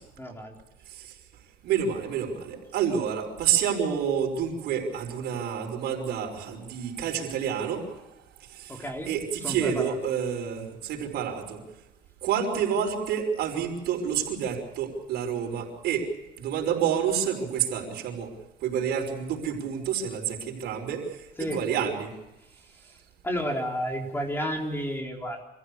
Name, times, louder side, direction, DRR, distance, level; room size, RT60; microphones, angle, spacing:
voice 1, 0.2-0.6 8.7-10.0 21.4-21.6 22.7-23.0 23.2-25.4, equal, 15° left, 1 dB, 4.1 m, -32 dB
voice 2, 1.6-7.9 8.5-11.6 12.2-16.0 16.4-18.3 18.6-22.1, right 8 dB, 75° right, 1 dB, 5.4 m, -29 dB
26.0 x 15.5 x 8.4 m, 0.96 s
cardioid pair, 110°, 17 cm